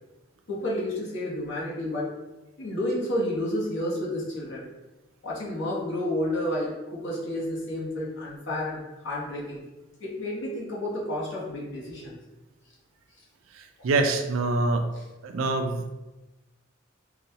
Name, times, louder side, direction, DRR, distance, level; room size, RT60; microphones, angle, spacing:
voice 1, 0.5-2.1 2.6-4.7 5.2-9.6 10.0-12.2 13.8-13.9, left 1 dB, 60° left, -5 dB, 1.1 m, -30 dB
voice 2, 13.5-14.9 15.2-15.9, right 3 dB, 80° right, 6 dB, 0.4 m, -25 dB
4.0 x 2.2 x 2.8 m, 1.1 s
head